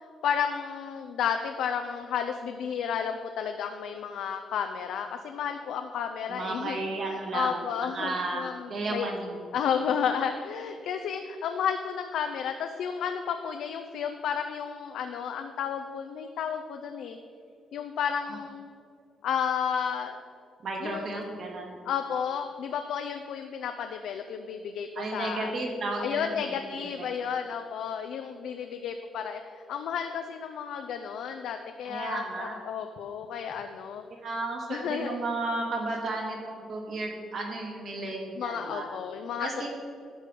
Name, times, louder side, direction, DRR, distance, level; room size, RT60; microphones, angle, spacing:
voice 1, 0.2-6.8 7.1-9.1 9.5-17.2 17.7-18.7 19.2-20.2 20.8-21.1 21.8-25.5 26.0-34.0 34.7-35.2 38.4-39.7, left 7 dB, 80° left, 6 dB, 0.5 m, -32 dB
voice 2, 6.3-8.4 8.7-9.4 20.6-21.8 25.0-27.1 31.8-32.6 34.2-38.8 39.4-39.7, right 2 dB, 55° right, 0 dB, 2.1 m, -33 dB
11.0 x 4.8 x 5.2 m, 2.3 s
cardioid pair, 90°, 0 cm